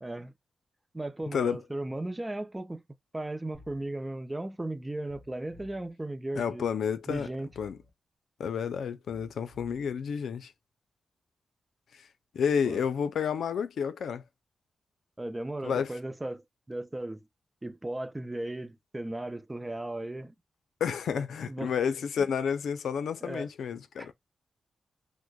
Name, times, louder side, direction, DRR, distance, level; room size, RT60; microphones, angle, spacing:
voice 1, 0.0-0.3 0.9-2.8 3.1-6.7 7.1-7.5 12.6-12.8 15.2-17.2 17.6-20.3 21.1-21.7 22.2-22.3 23.2-23.5 24.0-24.1, right 1 dB, 15° right, 0.6 m, -36 dB
sound 1, 3.5-3.9 5.1-5.9 7.1-7.9 9.1-9.9, left 2 dB, 40° left, 1.5 m, -54 dB
voice 2, 6.3-7.3 7.6-7.8 8.4-10.5 12.3-14.2 15.6-15.9 20.8-24.1, left 7 dB, 85° left, 0.5 m, -30 dB
6.1 x 2.1 x 2.2 m
cardioid pair, 85°, 0 cm